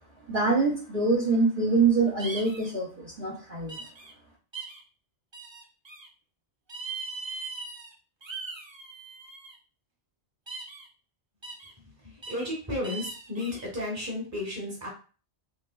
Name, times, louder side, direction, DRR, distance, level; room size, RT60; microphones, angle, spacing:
voice 1, 0.3-3.8, right 3 dB, 55° right, -4 dB, 1.0 m, -25 dB
sound 1, 2.2-2.7 3.7-4.1 4.5-4.8 5.3-6.1 6.7-7.9 8.2-9.5 10.5-10.9 11.4-11.7 12.2-12.5 12.8-13.6, right 4 dB, 30° right, 0.5 m, -40 dB
voice 2, 11.8-14.9, left 1 dB, 15° right, -3 dB, 1.2 m, -33 dB
3.8 x 3.1 x 2.2 m, 0.37 s
omnidirectional pair, 1.2 m